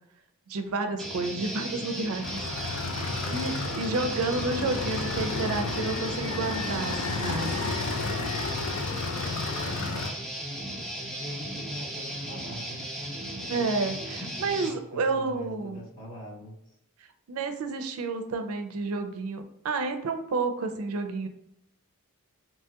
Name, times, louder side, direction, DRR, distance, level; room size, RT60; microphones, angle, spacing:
voice 1, 0.5-2.4 2.9-7.6 13.5-15.8 17.3-21.3, right 3 dB, 80° right, 7 dB, 0.4 m, -30 dB
Guitar, 1.0-14.7, right 1 dB, ahead, 0.5 m, -36 dB
sound 1, 2.2-10.1, left 3 dB, 65° left, 0.4 m, -32 dB
voice 2, 9.2-10.0 11.2-13.0 13.4-13.5 14.2-16.5, left 1 dB, 50° left, -6 dB, 1.3 m, -43 dB
2.9 x 2.8 x 2.2 m, 0.78 s
head